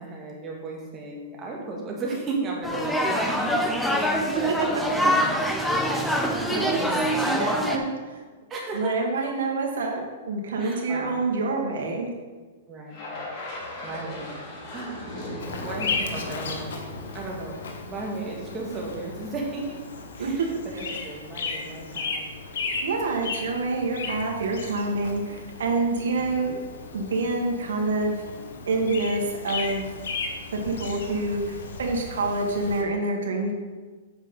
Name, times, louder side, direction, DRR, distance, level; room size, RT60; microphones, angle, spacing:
voice 1, 0.0-3.5 3.8-4.7 5.0-5.3 5.7-7.1 8.5-9.1 10.6-11.4 12.7-15.3 15.6-16.7 17.1-19.8 20.2-22.3 26.1-26.3, right 3 dB, 20° right, -2 dB, 1.9 m, -36 dB
sound 1, 2.6-7.8, equal, 5° left, 0.7 m, -24 dB
voice 2, 4.3-4.7 6.1-6.9 7.2-7.9 8.7-12.1 20.2-20.5 22.8-26.5 26.9-28.1 28.7-29.8 30.6-33.5, right 3 dB, 85° right, 0 dB, 1.7 m, -27 dB
sound 2, 12.9-18.2, left 1 dB, 40° left, 2.5 m, -38 dB
Bird vocalization bird call bird song, 15.4-32.8, left 4 dB, 80° left, 1.3 m, -35 dB
8.1 x 5.5 x 5.3 m, 1.4 s
hypercardioid pair, 155°, 0 cm